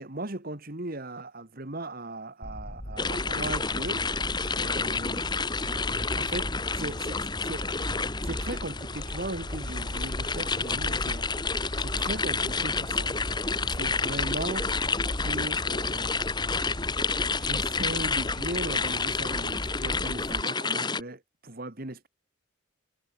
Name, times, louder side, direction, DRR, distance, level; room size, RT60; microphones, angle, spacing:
voice 1, 0.0-4.1 4.5-5.3 6.1-7.7 8.2-13.1 13.4-14.8 15.2-16.3 17.4-22.1, right 2 dB, 45° right, 1.8 m, -38 dB
sound 1, 2.4-20.4, equal, 35° left, 4.0 m, -37 dB
sound 2, 3.0-21.0, left 4 dB, 20° left, 1.7 m, -30 dB
head